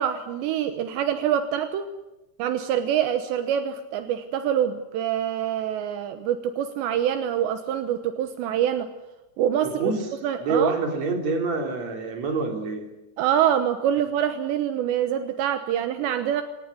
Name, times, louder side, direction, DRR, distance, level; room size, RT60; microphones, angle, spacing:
voice 1, 0.0-1.9 2.4-8.9 9.4-9.9 10.2-10.8 13.2-16.4, right 10 dB, 80° right, 9 dB, 3.2 m, -25 dB
voice 2, 9.6-10.0 10.4-12.8, right 4 dB, 40° right, 4 dB, 4.3 m, -26 dB
25.0 x 18.0 x 9.6 m, 1.0 s
omnidirectional pair, 5.3 m